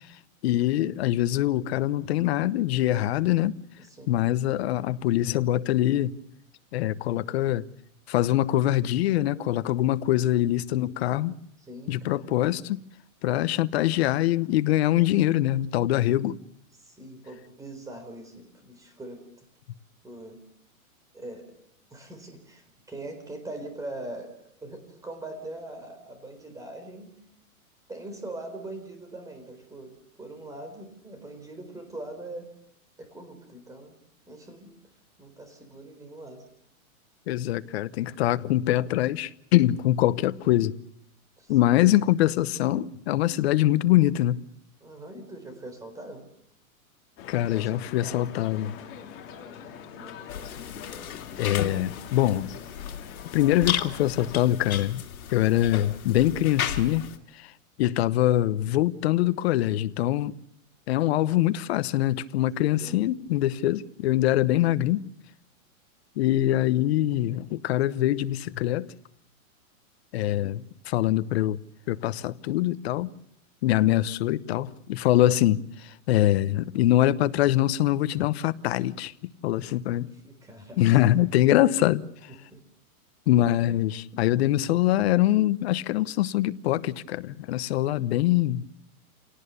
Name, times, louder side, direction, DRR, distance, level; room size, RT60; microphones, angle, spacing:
voice 1, 0.4-3.6 4.1-6.1 6.7-7.6 8.1-11.3 11.9-12.8 13.2-16.4 37.3-40.7 41.5-44.4 47.3-48.8 51.4-52.5 53.3-55.0 55.3-57.0 57.3-57.5 57.8-60.3 60.9-65.1 66.2-68.9 70.1-71.6 71.9-73.1 73.6-79.1 79.4-80.1 80.8-82.0 83.3-88.7, left 14 dB, 45° left, 1.0 m, -24 dB
voice 2, 3.8-4.1 11.6-12.3 16.8-19.2 20.0-20.4 21.1-21.5 21.9-27.1 27.9-32.5 33.0-34.0 34.3-34.7 35.2-36.4 41.4-41.8 44.8-46.2 47.5-48.3 49.9-50.5 62.8-63.0 70.2-70.6 80.1-81.0 82.3-82.6, right 2 dB, 10° right, 4.1 m, -42 dB
sound 1, 47.2-54.4, left 8 dB, 30° left, 3.2 m, -43 dB
sound 2, 50.3-57.2, left 9 dB, 75° left, 2.9 m, -35 dB
28.0 x 18.0 x 6.8 m
hypercardioid pair, 155°, 43 cm